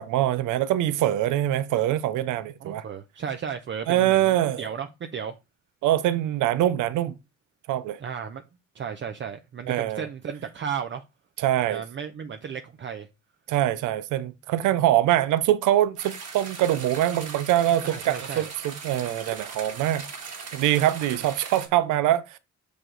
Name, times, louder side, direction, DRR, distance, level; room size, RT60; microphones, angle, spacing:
voice 1, 0.0-2.8 3.9-4.7 5.8-7.2 7.7-8.0 9.7-10.1 11.4-11.8 13.5-20.0 20.5-22.4, right 13 dB, 85° right, 0.6 m, -24 dB
voice 2, 2.6-5.4 8.0-8.4 8.7-11.0 11.7-13.1 17.8-18.5, right 7 dB, 40° right, 0.6 m, -34 dB
sound 1, 16.0-21.7, right 5 dB, 55° right, 2.1 m, -39 dB
6.2 x 5.1 x 3.8 m
cardioid pair, 90°, 30 cm